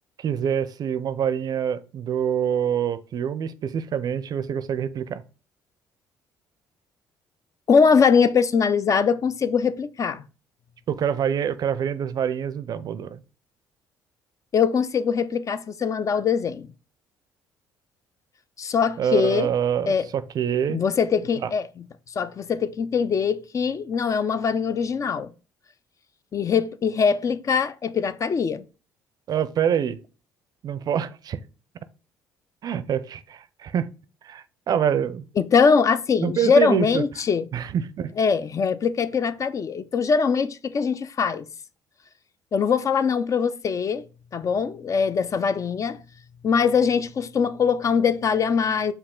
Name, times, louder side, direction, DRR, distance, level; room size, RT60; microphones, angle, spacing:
voice 1, 0.2-5.2 10.9-13.2 19.0-20.8 21.4-21.5 29.3-30.0 30.6-31.4 32.6-33.9 34.2-35.3 36.2-37.0 37.5-38.1, right 8 dB, 50° right, 0.4 m, -25 dB
voice 2, 7.7-10.2 14.5-16.7 18.6-19.5 19.9-20.1 20.7-25.3 26.3-28.7 35.4-37.5 38.2-41.4 42.5-44.1 44.3-46.0 46.4-48.9, left 6 dB, 40° left, 0.4 m, -22 dB
5.2 x 2.3 x 3.7 m
hypercardioid pair, 60°, 9 cm